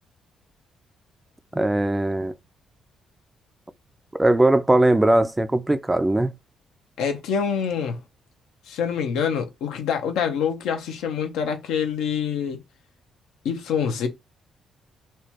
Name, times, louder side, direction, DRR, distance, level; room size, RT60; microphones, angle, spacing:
voice 1, 1.5-2.3 4.1-6.3, right 1 dB, 10° right, 0.3 m, -20 dB
voice 2, 7.0-8.0 8.7-12.6 13.4-14.1, left 7 dB, 90° left, 0.8 m, -26 dB
4.3 x 2.3 x 2.9 m
cardioid pair, 90°, 0 cm